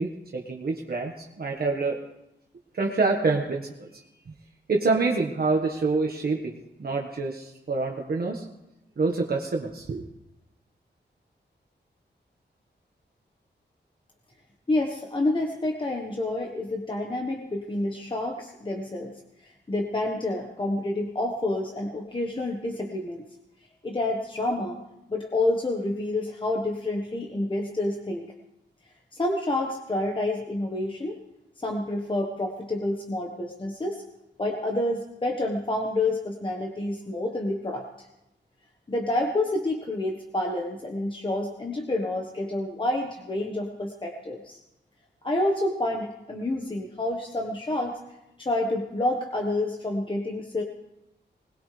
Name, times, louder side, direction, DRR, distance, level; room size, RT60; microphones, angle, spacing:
voice 1, 0.0-2.0 2.7-3.9 4.3-4.4 4.7-8.4 9.0-10.0, right 3 dB, 55° right, 0 dB, 1.5 m, -27 dB
voice 2, 14.7-23.2 23.8-24.8 25.1-28.2 29.1-31.2 31.6-34.0 34.4-37.9 38.9-44.6 45.2-48.0 48.4-50.6, left 2 dB, 25° left, 1 dB, 1.3 m, -28 dB
21.0 x 20.0 x 3.4 m, 0.90 s
wide cardioid pair, 150°, 18 cm